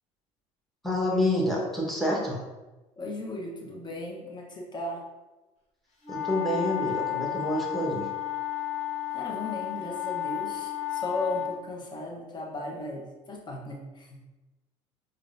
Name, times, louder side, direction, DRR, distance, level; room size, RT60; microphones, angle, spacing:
voice 1, 0.8-2.4 6.1-8.1, left 1 dB, ahead, -3 dB, 1.2 m, -28 dB
voice 2, 3.0-5.1 9.1-14.3, left 2 dB, 30° left, 0 dB, 1.0 m, -36 dB
sound 1, 6.0-11.5, left 13 dB, 50° left, 1.2 m, -32 dB
4.6 x 2.7 x 2.6 m, 1.1 s
supercardioid pair, 90°, 15 cm